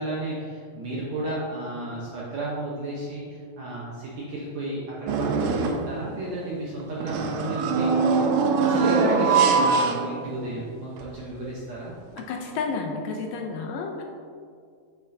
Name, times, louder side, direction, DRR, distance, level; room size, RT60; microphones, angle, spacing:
voice 1, 0.0-7.9 8.6-12.0, right 2 dB, 70° right, -6 dB, 1.7 m, -32 dB
sound 1, 5.1-5.9 7.0-10.6 11.0-11.1 12.2-12.3, right 4 dB, 90° right, 2.5 m, -23 dB
voice 2, 12.3-14.0, left 4 dB, 80° left, 2 dB, 2.1 m, -31 dB
8.7 x 7.9 x 2.7 m, 2.2 s
omnidirectional pair, 4.3 m